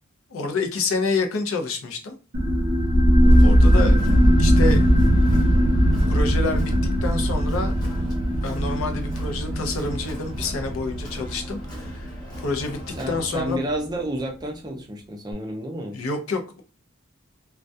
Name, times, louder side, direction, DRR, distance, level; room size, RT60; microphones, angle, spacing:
voice 1, 0.3-2.2 3.4-4.0 4.4-4.9 6.1-6.7 7.0-7.8 8.4-12.1 12.4-12.8 13.1-13.6 15.9-16.6, left 3 dB, 80° left, 5 dB, 0.5 m, -28 dB
sound 1, 2.3-13.5, equal, 50° right, 0.7 m, -19 dB
Crowd, 3.3-13.5, left 1 dB, 20° left, 0.7 m, -41 dB
voice 2, 13.0-16.0, right 1 dB, 20° right, 1 dB, 0.4 m, -30 dB
2.2 x 2.2 x 2.6 m, 0.34 s
head